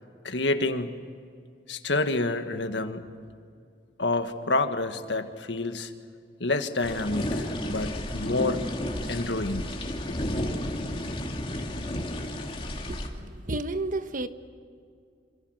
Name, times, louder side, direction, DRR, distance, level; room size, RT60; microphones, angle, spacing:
voice 1, 0.2-1.0 1.7-3.0 4.0-5.9 6.4-8.6 9.1-9.7 10.1-10.2, left 2 dB, 85° left, 1.7 m, -28 dB
sound 1, 6.8-13.1, left 1 dB, 30° left, 2.5 m, -32 dB
voice 2, 12.9-14.3, right 2 dB, 50° right, 1.2 m, -32 dB
27.0 x 26.5 x 6.5 m
head